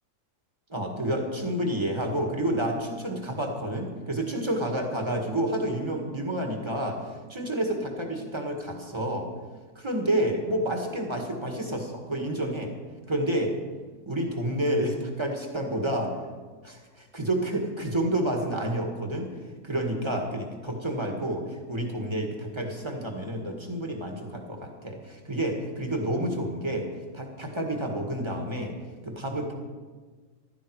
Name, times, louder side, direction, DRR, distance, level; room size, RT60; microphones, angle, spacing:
voice 1, 0.7-7.0 7.3-9.3 9.7-12.7 13.1-13.5 14.0-16.1 16.6-19.3 19.6-26.9 27.1-28.7 29.0-29.5, right 1 dB, 15° right, 2 dB, 1.8 m, -29 dB
15.0 x 12.5 x 4.8 m, 1.5 s
omnidirectional pair, 1.7 m